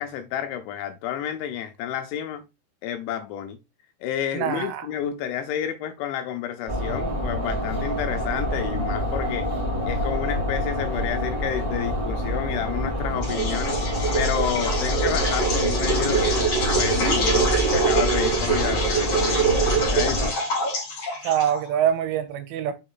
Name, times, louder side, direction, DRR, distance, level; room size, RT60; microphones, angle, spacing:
voice 1, 0.0-2.4 2.8-3.6 4.0-9.5 9.9-13.8 14.1-16.4 16.7-19.4 19.9-20.3, left 10 dB, 80° left, 2.7 m, -30 dB
voice 2, 4.3-4.9 21.2-22.7, right 10 dB, 80° right, 3.3 m, -24 dB
sound 1, 6.7-20.3, equal, 40° right, 0.5 m, -27 dB
sound 2, 13.2-21.8, right 3 dB, 35° left, 3.1 m, -24 dB
6.6 x 5.0 x 3.8 m
omnidirectional pair, 5.8 m